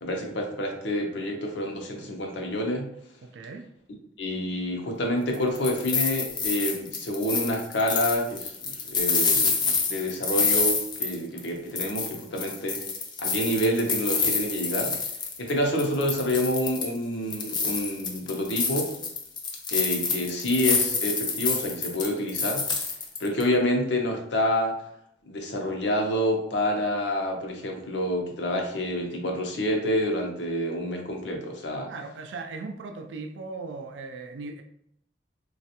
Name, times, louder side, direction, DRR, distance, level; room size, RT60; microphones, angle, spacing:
voice 1, 0.0-2.9 4.2-12.8 13.2-14.9 15.4-18.9 19.7-22.9 23.2-24.7 25.3-31.9, left 1 dB, 75° left, 1 dB, 0.7 m, -28 dB
voice 2, 3.2-3.6 31.9-34.6, right 3 dB, 85° right, 5 dB, 0.4 m, -38 dB
sound 1, 5.3-11.5 11.8-15.5 15.8-17.0 17.3-23.4, left 5 dB, 25° left, 0.4 m, -27 dB
3.2 x 2.4 x 2.8 m, 0.74 s
head